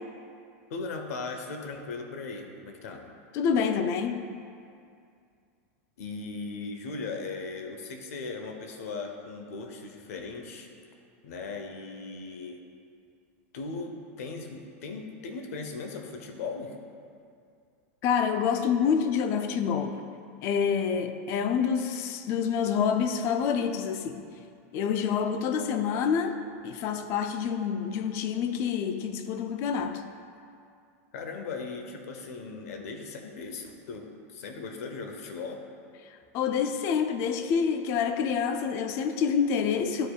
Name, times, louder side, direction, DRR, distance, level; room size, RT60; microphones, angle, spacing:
voice 1, 0.7-3.0 6.0-10.7 11.2-12.6 13.5-16.8 31.1-35.6, left 4 dB, 70° left, 4 dB, 0.8 m, -38 dB
voice 2, 3.3-4.3 18.0-20.0 20.4-24.2 24.7-26.4 26.6-30.0 36.3-40.1, left 7 dB, 30° left, 8 dB, 0.3 m, -27 dB
11.5 x 4.5 x 2.3 m, 2.4 s
supercardioid pair, 165°, 8 cm